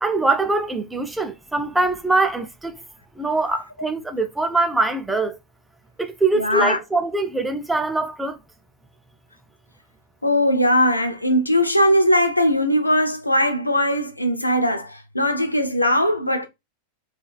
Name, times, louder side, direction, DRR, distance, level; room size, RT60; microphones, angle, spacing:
voice 1, 0.0-2.7 3.2-5.4 6.0-8.4, right 3 dB, 5° right, 0.4 m, -23 dB
voice 2, 6.3-6.8 10.2-16.5, equal, 85° left, 0.4 m, -20 dB
3.0 x 2.4 x 2.2 m
figure-of-eight pair, 90°, 0 cm